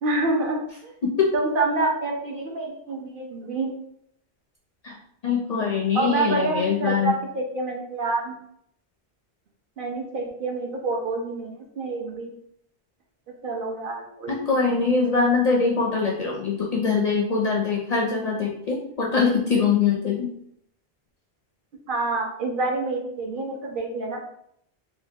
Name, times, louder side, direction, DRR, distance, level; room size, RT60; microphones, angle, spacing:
voice 1, 0.0-0.9 1.3-3.7 5.9-8.3 9.8-12.3 13.4-14.4 21.9-24.2, right 3 dB, 60° right, 0 dB, 0.8 m, -27 dB
voice 2, 1.0-1.3 4.8-5.0 5.2-7.1 14.3-20.3, left 5 dB, 55° left, -2 dB, 0.5 m, -23 dB
3.7 x 2.2 x 2.7 m, 0.71 s
omnidirectional pair, 1.1 m